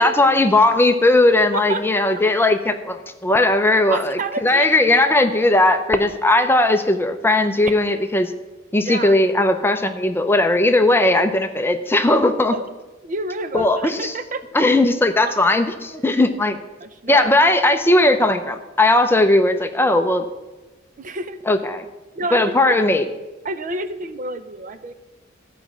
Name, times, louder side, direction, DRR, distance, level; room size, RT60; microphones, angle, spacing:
voice 1, 0.0-8.3 8.7-12.5 13.5-14.1 14.5-16.6 17.1-20.2 21.5-21.9 22.3-23.1, left 2 dB, 10° left, 7 dB, 0.5 m, -17 dB
voice 2, 3.9-5.0 8.8-9.2 12.5-12.6 13.0-14.4 15.3-15.4 16.0-16.1 16.8-17.3 21.0-21.4 22.1-22.7 23.4-24.9, right 2 dB, 40° right, 11 dB, 0.6 m, -29 dB
13.0 x 5.0 x 7.2 m, 1.1 s
head